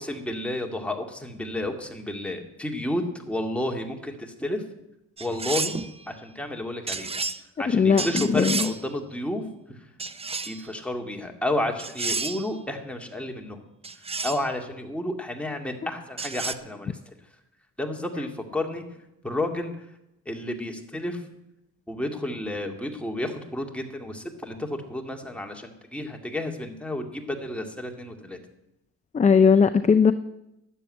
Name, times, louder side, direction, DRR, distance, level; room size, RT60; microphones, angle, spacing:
voice 1, 0.0-4.6 5.2-5.8 6.1-7.2 7.6-9.4 10.5-13.6 14.2-17.0 17.8-18.8 19.2-19.8 20.3-21.2 21.9-28.4, left 1 dB, 5° left, 2 dB, 2.2 m, -31 dB
sound 1, 5.2-5.9 6.9-7.4 8.0-8.8 10.0-10.7 11.8-12.5 13.8-14.5 16.2-16.5, right 4 dB, 20° right, 0.7 m, -31 dB
voice 2, 29.1-30.1, left 6 dB, 25° left, 10 dB, 0.5 m, -18 dB
12.5 x 7.4 x 9.7 m, 0.87 s
cardioid pair, 90°, 30 cm